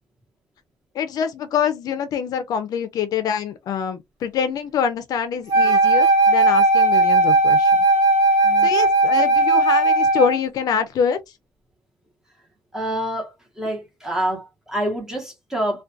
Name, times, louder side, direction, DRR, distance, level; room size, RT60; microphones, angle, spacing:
voice 1, 0.9-7.7 8.6-11.2, left 7 dB, 60° left, 0.4 m, -25 dB
Wind instrument woodwind instrument, 5.5-10.4, right 2 dB, 55° right, 0.9 m, -16 dB
voice 2, 8.4-8.7 12.7-15.8, right 1 dB, 5° right, 0.9 m, -27 dB
2.4 x 2.2 x 2.5 m
cardioid pair, 145°, 7 cm